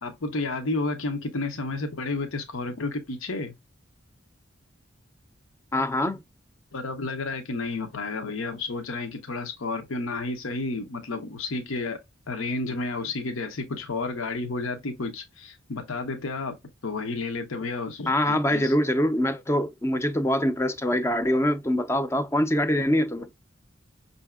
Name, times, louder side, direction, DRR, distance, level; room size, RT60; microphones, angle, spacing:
voice 1, 0.0-3.5 6.7-12.0 12.3-16.6 16.8-18.7, left 3 dB, 80° left, 0.8 m, -31 dB
voice 2, 5.7-6.2 18.1-23.3, left 1 dB, 15° left, 0.4 m, -24 dB
5.6 x 2.7 x 2.2 m
head